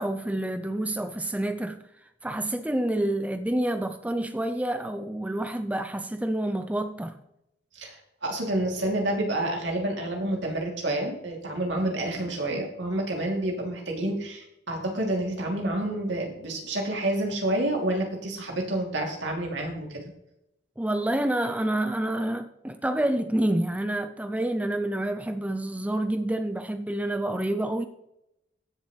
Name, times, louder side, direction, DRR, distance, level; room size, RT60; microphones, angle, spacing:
voice 1, 0.0-1.8 2.2-7.2 20.8-27.8, right 1 dB, 10° right, 0.5 m, -28 dB
voice 2, 7.7-20.0, right 1 dB, 70° right, 2.9 m, -29 dB
15.5 x 7.3 x 3.3 m
head